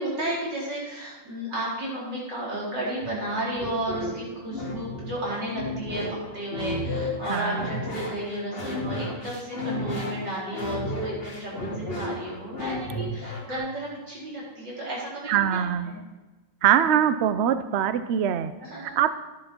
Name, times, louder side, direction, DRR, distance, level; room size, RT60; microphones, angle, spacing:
voice 1, 0.0-6.0 6.3-16.0 18.6-19.0, right 1 dB, 70° right, -5 dB, 4.7 m, -33 dB
sound 1, 3.0-13.6, left 1 dB, 30° left, 2.0 m, -33 dB
voice 2, 7.3-7.7 13.5-13.6 15.3-15.9 16.6-18.5 18.8-19.1, right 9 dB, 90° right, 12 dB, 0.5 m, -23 dB
11.5 x 10.5 x 4.4 m, 1.2 s
omnidirectional pair, 2.0 m